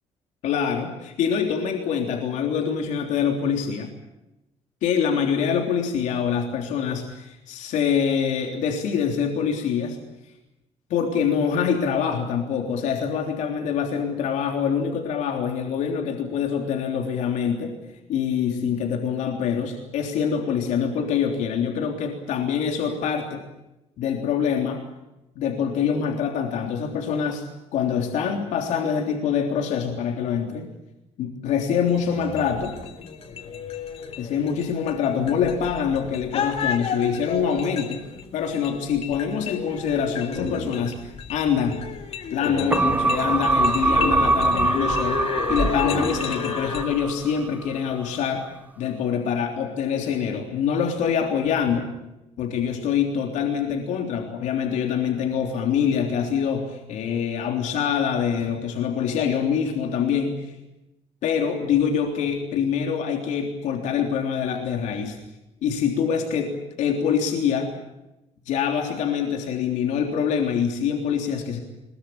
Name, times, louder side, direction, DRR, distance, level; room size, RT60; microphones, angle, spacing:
voice 1, 0.4-3.9 4.8-10.0 10.9-17.7 18.1-23.4 24.0-24.8 25.4-27.5 27.7-30.7 31.2-32.8 34.2-41.8 42.3-45.2 45.5-48.5 48.8-51.9 52.4-60.5 61.2-65.2 65.6-67.7 68.5-71.6, left 7 dB, 80° left, 3 dB, 3.4 m, -25 dB
sound 1, 31.8-46.8, left 5 dB, 55° left, 4.0 m, -31 dB
sound 2, 42.7-47.4 47.8-47.9, right 3 dB, 15° right, 0.8 m, -23 dB
22.5 x 22.0 x 8.7 m, 0.93 s
cardioid pair, 140°, 12 cm